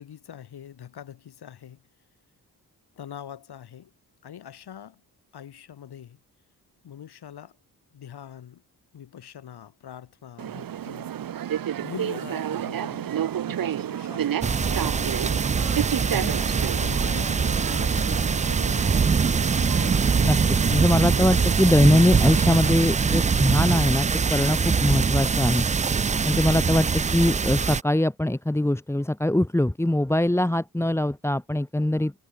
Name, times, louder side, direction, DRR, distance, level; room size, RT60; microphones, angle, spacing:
voice 1, 0.0-1.8 3.0-3.9 4.2-5.0 5.3-6.2 6.8-7.6 7.9-8.6 8.9-11.1 11.8-13.2 13.5-15.2 16.2-16.5 16.8-19.0, left 9 dB, 90° left, 5.4 m, -43 dB
sound 1, 10.4-22.7, right 10 dB, 60° right, 1.0 m, -31 dB
sound 2, 14.4-27.8, right 5 dB, 20° right, 0.3 m, -23 dB
voice 2, 20.2-25.7 26.2-32.1, left 1 dB, 5° left, 1.6 m, -22 dB
wide cardioid pair, 125°, 38 cm